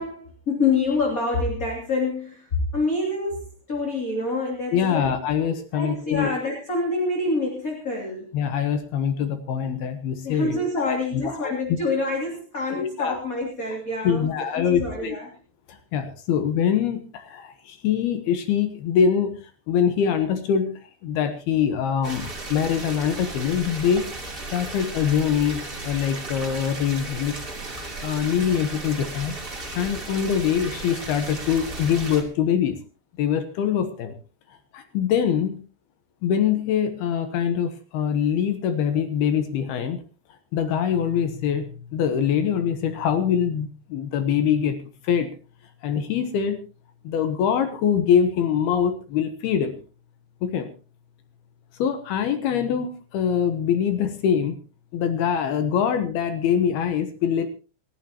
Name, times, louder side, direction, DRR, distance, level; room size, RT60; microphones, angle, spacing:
voice 1, 0.0-5.1 5.7-8.3 10.2-15.3, left 3 dB, 25° left, -1 dB, 2.7 m, -27 dB
voice 2, 4.7-6.3 8.3-10.9 11.2-11.5 12.7-13.2 14.0-15.2 15.7-19.4 19.7-24.1 24.5-27.3 28.0-29.3 29.8-32.8 33.2-34.1 34.5-35.6 36.2-40.0 40.5-44.8 45.0-45.3 45.8-46.6 47.0-49.8 50.4-50.7 51.8-54.6 54.9-57.5, left 8 dB, 75° left, 8 dB, 2.9 m, -24 dB
sound 1, 22.0-32.2, right 2 dB, 20° right, 1.9 m, -35 dB
28.0 x 11.5 x 2.9 m, 0.34 s
omnidirectional pair, 4.8 m